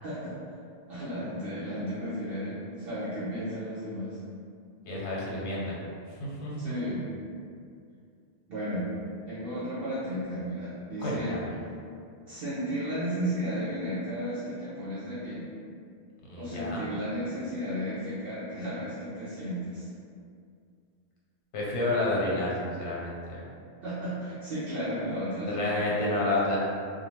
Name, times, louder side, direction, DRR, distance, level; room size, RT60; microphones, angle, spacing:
voice 1, 0.0-0.4 0.9-4.2 6.6-7.0 8.5-8.9 9.3-11.4 12.3-15.5 16.4-19.9 23.8-26.0, equal, 65° right, -11 dB, 0.8 m, -34 dB
voice 2, 4.9-5.8 6.2-6.7 11.0-11.5 16.2-16.9 21.5-23.4 25.4-26.6, left 2 dB, 85° left, -5 dB, 1.0 m, -30 dB
2.5 x 2.3 x 3.1 m, 2.3 s
omnidirectional pair, 1.1 m